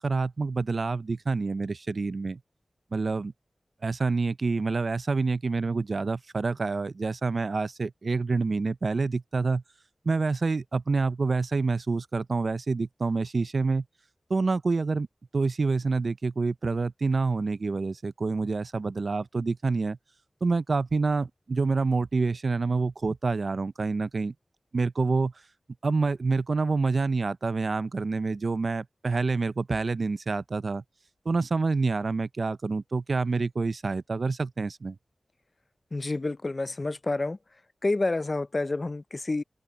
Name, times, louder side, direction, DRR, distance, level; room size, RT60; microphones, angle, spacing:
voice 1, 0.0-2.4 2.9-3.3 3.8-9.6 10.1-13.8 14.3-15.1 15.3-20.0 20.4-24.3 24.7-25.3 25.8-30.8 31.3-35.0, right 4 dB, 65° right, 0.4 m, -27 dB
voice 2, 35.9-37.4 37.8-39.4, left 2 dB, 45° left, 0.5 m, -28 dB
open air
cardioid pair, 50°, 0 cm